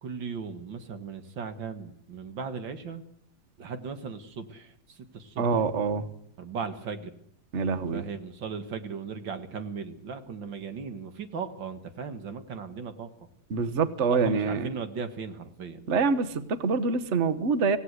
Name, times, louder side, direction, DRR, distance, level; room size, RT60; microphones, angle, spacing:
voice 1, 0.0-3.0 3.6-5.5 6.4-7.1 7.9-13.1 14.1-15.9, right 5 dB, 90° right, 8 dB, 2.4 m, -37 dB
voice 2, 5.4-6.1 7.5-8.0 13.5-14.7 15.9-17.8, right 5 dB, 40° right, 11 dB, 1.5 m, -25 dB
26.0 x 17.0 x 8.1 m, 0.71 s
omnidirectional pair, 2.0 m